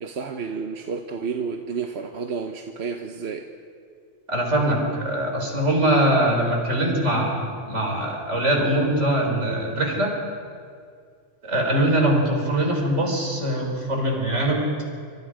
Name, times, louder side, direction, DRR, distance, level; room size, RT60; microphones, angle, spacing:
voice 1, 0.0-3.5, right 5 dB, 65° right, 5 dB, 1.3 m, -31 dB
voice 2, 4.3-10.1 11.4-14.7, right 1 dB, 80° right, 0 dB, 4.7 m, -22 dB
26.0 x 26.0 x 5.0 m, 2.2 s
omnidirectional pair, 1.2 m